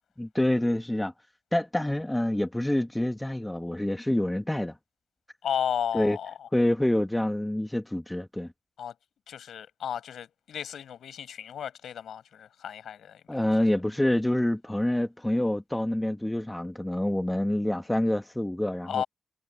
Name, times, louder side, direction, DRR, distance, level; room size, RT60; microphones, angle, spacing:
voice 1, 0.2-1.1 1.5-4.8 5.9-6.2 6.5-8.5 13.3-19.0, left 1 dB, 10° left, 1.5 m, -27 dB
voice 2, 5.4-6.5 8.8-8.9 9.3-13.5 18.9-19.1, left 9 dB, 80° left, 5.3 m, -34 dB
cardioid pair, 60°, 0 cm